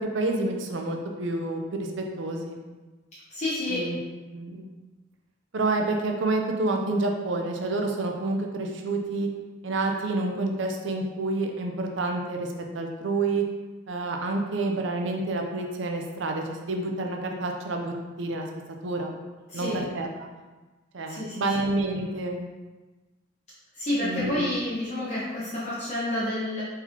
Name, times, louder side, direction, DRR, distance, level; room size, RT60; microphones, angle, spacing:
voice 1, 0.0-2.6 3.7-4.0 4.3-4.6 5.5-9.3 9.6-12.5 12.7-13.4 13.9-18.5 18.8-19.1 19.5-20.3 20.9-22.4 24.0-24.5, right 2 dB, 70° right, 2 dB, 0.6 m, -28 dB
voice 2, 3.3-3.9 19.5-19.9 21.1-21.5 23.7-26.6, left 1 dB, 35° left, -9 dB, 0.8 m, -29 dB
4.3 x 4.0 x 2.9 m, 1.2 s
head